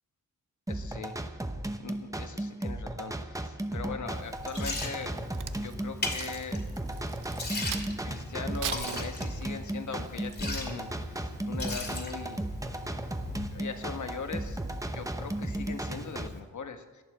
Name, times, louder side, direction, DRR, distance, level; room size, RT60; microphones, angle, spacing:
voice 1, 0.7-1.2 1.8-5.2 5.5-6.6 8.0-12.4 13.3-14.6 14.9-17.0, left 5 dB, 60° left, 7 dB, 1.4 m, -40 dB
sound 1, 0.7-16.3, right 1 dB, 10° right, 0.9 m, -35 dB
Liquid, 4.1-16.4, left 2 dB, 30° left, 2.5 m, -40 dB
Crack, 5.0-8.1 8.5-9.7 10.2-10.5, right 9 dB, 70° right, 0.7 m, -40 dB
18.0 x 11.5 x 4.9 m, 1.3 s
wide cardioid pair, 110°, 33 cm